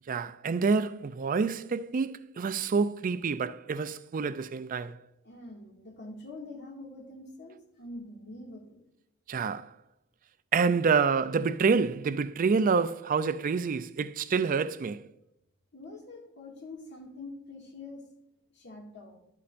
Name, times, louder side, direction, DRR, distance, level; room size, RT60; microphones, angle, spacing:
voice 1, 0.1-5.0 9.3-9.7 10.5-15.0, right 5 dB, 40° right, 0.4 m, -27 dB
voice 2, 5.2-8.9 15.7-18.0 18.5-19.2, left 2 dB, 55° left, 2.1 m, -45 dB
11.5 x 8.5 x 2.5 m
head